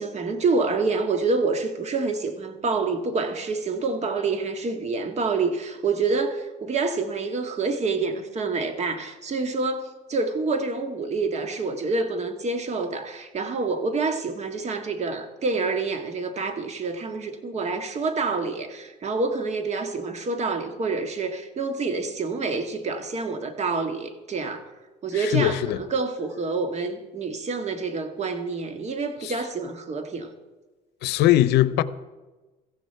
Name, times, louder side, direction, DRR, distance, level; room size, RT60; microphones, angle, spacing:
voice 1, 0.0-24.7 25.0-30.3, right 4 dB, 40° right, 1.7 m, -27 dB
voice 2, 25.1-25.8 29.2-29.3 31.0-31.8, left 14 dB, 85° left, 0.7 m, -21 dB
15.0 x 15.0 x 4.5 m
cardioid pair, 110°, 17 cm